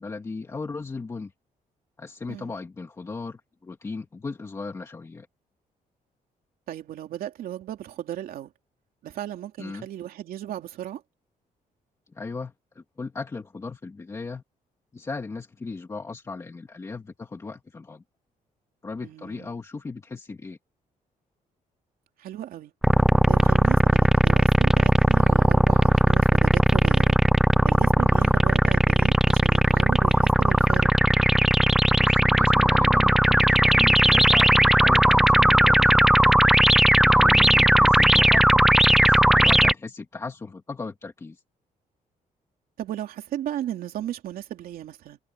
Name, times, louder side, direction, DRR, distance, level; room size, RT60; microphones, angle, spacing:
voice 1, 0.0-1.3 2.0-5.3 9.6-9.9 12.1-14.4 14.9-18.0 18.8-20.6 28.0-28.4 32.0-36.4 37.0-38.7 39.0-41.4, left 4 dB, 20° left, 2.2 m, -37 dB
voice 2, 6.7-8.5 9.0-11.0 19.0-19.5 22.2-22.7 23.3-27.2 27.6-30.9 37.5-37.8 42.8-45.2, right 12 dB, 80° right, 3.0 m, -36 dB
sound 1, 22.8-39.7, right 1 dB, 5° right, 0.3 m, -17 dB
cardioid pair, 175°, 15 cm